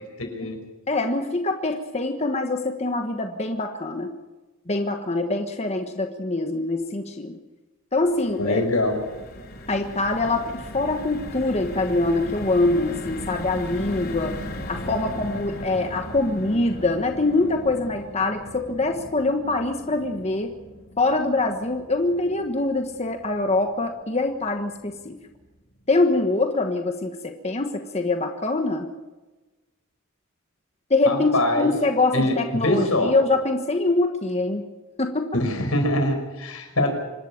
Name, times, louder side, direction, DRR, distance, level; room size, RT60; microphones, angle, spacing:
voice 1, 0.2-0.6 8.4-9.0 31.1-31.7 32.1-33.1 35.3-37.0, left 1 dB, 85° left, 4 dB, 5.4 m, -23 dB
voice 2, 0.9-4.1 4.7-7.3 7.9-8.6 9.7-14.3 14.7-20.5 21.0-25.1 25.9-28.9 30.9-34.6 35.0-35.3, left 2 dB, 30° left, 5 dB, 1.3 m, -24 dB
sound 1, 7.9-24.2 24.6-24.8 25.0-25.3, left 1 dB, 45° left, 3.0 m, -38 dB
26.0 x 12.5 x 8.7 m, 1.2 s
head